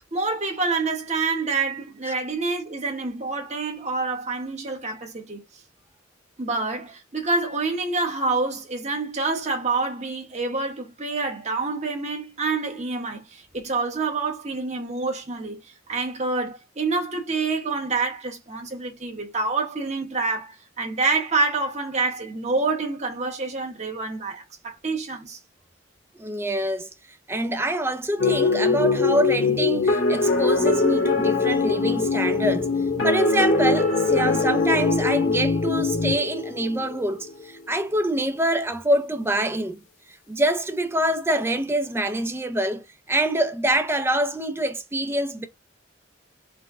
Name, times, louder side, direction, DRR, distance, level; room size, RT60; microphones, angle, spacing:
voice 1, 0.1-5.4 6.4-25.4, right 3 dB, 35° right, 1.2 m, -27 dB
voice 2, 26.2-26.9 27.3-32.7 33.0-39.8 40.3-45.5, right 1 dB, 10° right, 0.5 m, -25 dB
sound 1, 28.2-37.4, left 3 dB, 90° left, 1.5 m, -22 dB
4.0 x 2.2 x 3.6 m
head